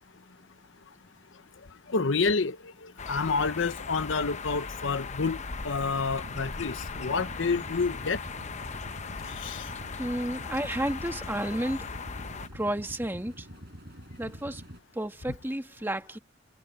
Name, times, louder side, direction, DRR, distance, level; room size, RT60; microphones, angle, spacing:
voice 1, 1.9-2.6 2.8-5.4 5.6-8.2 9.4-9.6, left 4 dB, 75° left, 0.8 m, -28 dB
sound 1, 3.0-12.5, left 4 dB, 35° left, 0.8 m, -38 dB
sound 2, 5.9-14.8, equal, 55° right, 5.3 m, -46 dB
voice 2, 10.0-11.9 12.5-13.5 14.2-14.6 14.9-16.2, right 1 dB, 10° right, 1.6 m, -31 dB
head